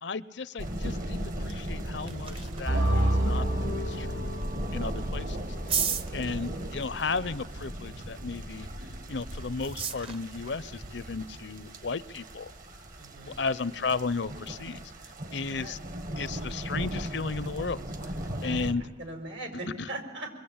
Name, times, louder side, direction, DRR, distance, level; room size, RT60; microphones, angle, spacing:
voice 1, 0.0-4.3 4.7-5.4 5.8-5.9 6.1-8.7 9.1-12.5 13.3-14.8 15.3-15.8 16.2-17.8 18.4-18.9 19.8-19.9, left 4 dB, 65° left, 17 dB, 0.7 m, -34 dB
sound 1, 0.6-18.7, equal, 50° right, 1.5 m, -38 dB
sound 2, 1.6-14.2, right 6 dB, 30° right, 0.9 m, -40 dB
sound 3, 2.7-9.9, right 1 dB, 65° right, 3.8 m, -31 dB
voice 2, 5.0-5.3 6.3-6.8 13.0-13.4 13.8-14.0 15.4-15.8 18.4-20.3, right 2 dB, 80° right, 4 dB, 5.4 m, -42 dB
25.5 x 22.5 x 8.7 m, 1.3 s
head